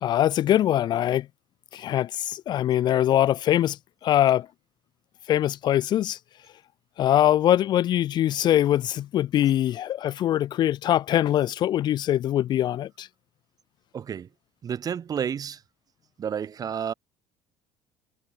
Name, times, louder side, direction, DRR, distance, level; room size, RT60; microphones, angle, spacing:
voice 1, 0.0-1.3 1.7-3.8 4.0-4.5 5.3-6.2 7.0-13.1, left 12 dB, 50° left, 0.6 m, -22 dB
voice 2, 13.9-14.3 14.6-15.6 16.2-16.9, right 8 dB, 40° right, 4.0 m, -30 dB
supercardioid pair, 85°, 9 cm